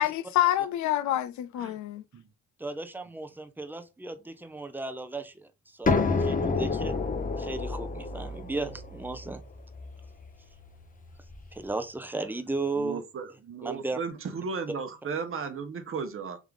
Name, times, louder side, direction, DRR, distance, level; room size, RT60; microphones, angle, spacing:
voice 1, 0.0-2.0, left 13 dB, 70° left, 0.4 m, -27 dB
voice 2, 2.6-7.0 7.4-9.4 11.5-13.0 13.6-14.0, right 3 dB, 5° right, 0.6 m, -35 dB
sound 1, 5.9-11.4, left 4 dB, 25° left, 0.8 m, -30 dB
voice 3, 12.8-16.4, right 5 dB, 45° right, 0.9 m, -35 dB
3.6 x 3.3 x 3.6 m
cardioid pair, 90°, 30 cm